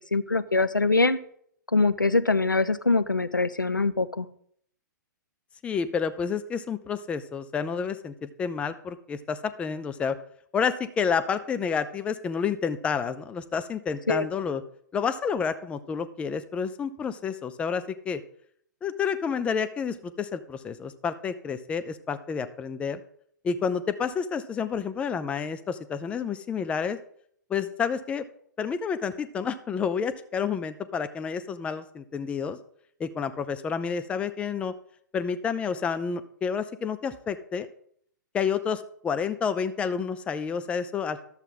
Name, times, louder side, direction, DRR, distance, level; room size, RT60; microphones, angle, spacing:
voice 1, 0.1-1.2 1.7-4.3 14.1-14.3, left 3 dB, 90° left, 14 dB, 0.4 m, -23 dB
voice 2, 5.6-10.2 10.5-14.6 14.9-18.2 18.8-23.0 23.4-27.0 27.5-28.2 28.6-32.6 33.0-34.7 35.1-37.7 38.3-41.2, left 6 dB, 10° left, 12 dB, 0.4 m, -29 dB
11.0 x 7.2 x 3.9 m, 0.66 s
figure-of-eight pair, 115°, 10 cm